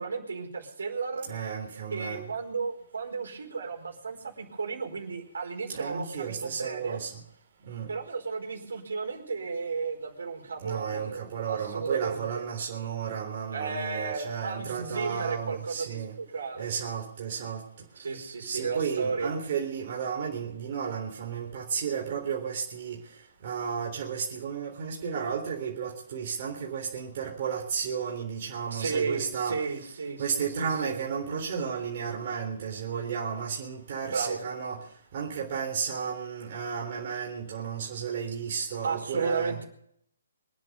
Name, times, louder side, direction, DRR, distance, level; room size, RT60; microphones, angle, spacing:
voice 1, 0.0-1.4 1.9-7.0 7.9-12.5 13.5-16.7 18.0-19.4 28.7-31.0 34.1-34.4 38.8-39.6, right 4 dB, 65° right, 2 dB, 4.7 m, -34 dB
voice 2, 1.3-2.3 5.7-7.1 7.7-7.9 10.6-16.2 16.6-17.6 18.5-23.0 23.4-29.6 30.2-34.8 35.1-39.6, right 7 dB, 40° right, -1 dB, 3.7 m, -33 dB
24.5 x 10.5 x 5.5 m, 0.69 s
figure-of-eight pair, 135°, 0 cm